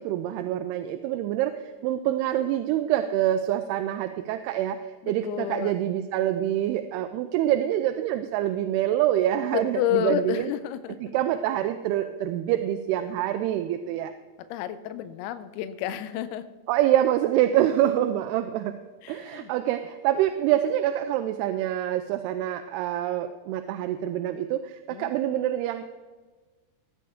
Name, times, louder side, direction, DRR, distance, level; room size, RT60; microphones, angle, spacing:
voice 1, 0.0-4.8 5.1-10.5 11.0-14.1 16.7-18.8 19.1-25.9, right 12 dB, 85° right, 8 dB, 2.6 m, -26 dB
voice 2, 5.0-5.8 9.5-11.0 14.5-16.5 19.0-19.5 24.9-25.1, left 11 dB, 85° left, 13 dB, 2.5 m, -30 dB
16.0 x 9.8 x 3.6 m, 1.3 s
omnidirectional pair, 4.6 m